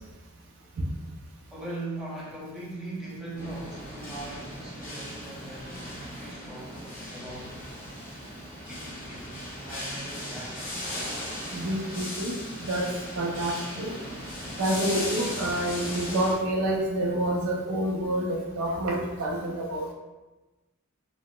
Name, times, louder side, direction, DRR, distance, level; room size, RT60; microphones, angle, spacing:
voice 1, 1.5-7.6 8.7-9.4 9.6-10.7, right 2 dB, 5° right, -8 dB, 0.7 m, -40 dB
sound 1, 3.4-16.3, left 1 dB, 40° left, 1.1 m, -37 dB
voice 2, 11.5-13.9 14.6-19.9, right 1 dB, 70° right, -1 dB, 0.5 m, -28 dB
3.6 x 2.0 x 2.2 m, 1.1 s
head